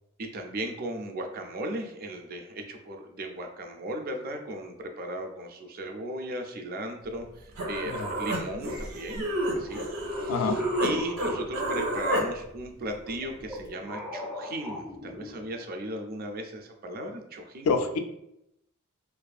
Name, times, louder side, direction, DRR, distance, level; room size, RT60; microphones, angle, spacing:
voice 1, 0.2-9.3 9.5-17.8, right 1 dB, 45° right, 4 dB, 0.3 m, -36 dB
Human voice, 7.2-7.3 7.6-10.9 11.2-12.2, right 1 dB, 85° right, 0.7 m, -30 dB
sound 1, 9.7-12.4 13.0-15.7, left 1 dB, 5° right, 0.6 m, -41 dB
voice 2, 10.3-10.6 17.6-18.0, left 4 dB, 70° left, 7 dB, 0.3 m, -26 dB
2.5 x 2.4 x 2.3 m, 0.80 s
head